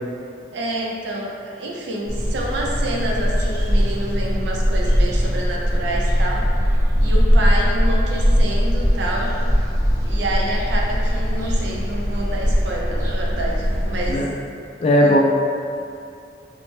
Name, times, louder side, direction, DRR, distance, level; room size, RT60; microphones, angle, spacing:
voice 1, 0.5-6.5 7.0-9.4 10.0-14.4 14.9-15.2, right 1 dB, 75° right, -2 dB, 0.5 m, -28 dB
sound 1, 2.1-14.1, equal, 20° right, 0.6 m, -20 dB
voice 2, 14.8-15.2, left 1 dB, 35° left, -2 dB, 0.3 m, -16 dB
3.1 x 2.0 x 3.1 m, 2.4 s
head